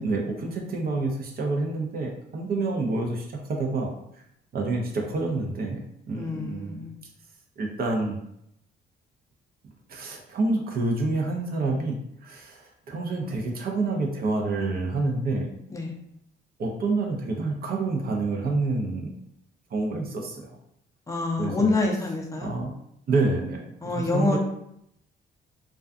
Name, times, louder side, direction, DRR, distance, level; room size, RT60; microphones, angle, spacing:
voice 1, 0.0-4.2 4.5-6.9 7.6-8.2 9.9-15.5 16.6-19.1 19.7-20.6 21.4-21.7 22.4-22.7 23.1-23.6 23.9-24.4, right 3 dB, 50° right, 1 dB, 0.5 m, -28 dB
voice 2, 6.1-7.0 15.7-15.9 21.1-22.5 23.8-24.4, left 3 dB, 15° left, 0 dB, 0.5 m, -26 dB
2.3 x 2.3 x 2.4 m, 0.76 s
cardioid pair, 90°, 20 cm